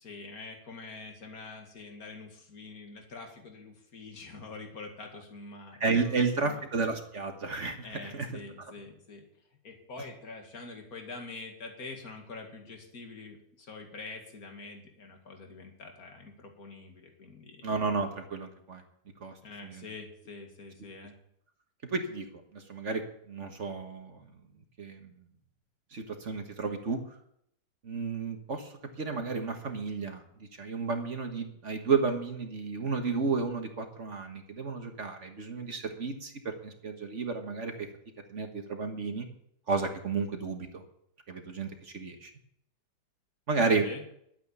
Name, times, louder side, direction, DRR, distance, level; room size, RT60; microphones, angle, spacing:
voice 1, 0.0-6.6 7.8-9.2 9.6-17.7 19.4-21.1 43.8-44.0, left 3 dB, 55° left, 3 dB, 2.6 m, -45 dB
voice 2, 5.8-8.3 17.6-18.8 19.2-19.4 19.6-19.8 21.8-24.3 24.8-25.2 25.9-27.0 27.8-28.7 29.0-30.2 30.6-37.9 38.3-39.3 39.7-40.8 41.3-42.3 43.5-43.9, right 4 dB, 45° right, 5 dB, 1.7 m, -32 dB
11.5 x 9.2 x 7.0 m, 0.72 s
omnidirectional pair, 1.9 m